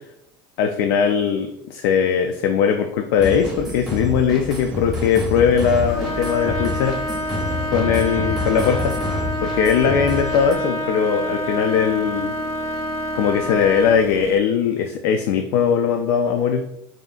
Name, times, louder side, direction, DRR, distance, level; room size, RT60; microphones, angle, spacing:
voice 1, 0.6-7.0 7.7-8.9 9.4-12.3 13.1-16.6, left 7 dB, 80° left, 5 dB, 0.4 m, -20 dB
sound 1, 3.2-10.5, left 2 dB, ahead, 1.0 m, -28 dB
sound 2, 4.6-14.4, right 4 dB, 25° right, 0.3 m, -40 dB
Trumpet, 5.9-14.0, equal, 55° left, 1.2 m, -27 dB
5.0 x 2.8 x 2.4 m, 0.78 s
cardioid pair, 140°, 11 cm